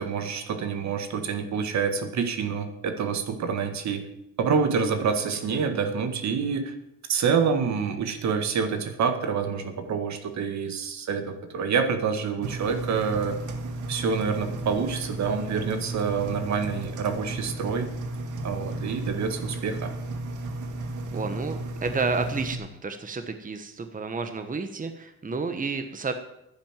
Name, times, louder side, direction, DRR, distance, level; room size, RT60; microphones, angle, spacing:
voice 1, 0.0-4.1 4.4-6.7 7.1-13.4 13.9-17.9 18.4-19.9, right 6 dB, 65° right, 7 dB, 1.9 m, -27 dB
Engine, 12.4-22.5, right 2 dB, 85° right, 1.8 m, -34 dB
voice 2, 21.1-26.1, right 4 dB, 25° right, 8 dB, 1.3 m, -31 dB
11.0 x 10.0 x 7.5 m, 0.83 s
cardioid pair, 90°, 30 cm